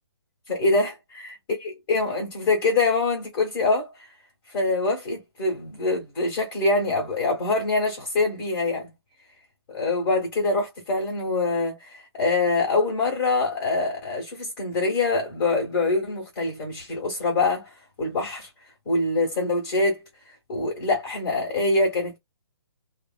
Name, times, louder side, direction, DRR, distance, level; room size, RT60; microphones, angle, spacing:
voice 1, 0.5-4.1 4.5-8.9 9.7-18.5 18.9-22.2, left 3 dB, 15° left, 0.7 m, -25 dB
2.9 x 2.1 x 2.2 m
hypercardioid pair, 175°, 14 cm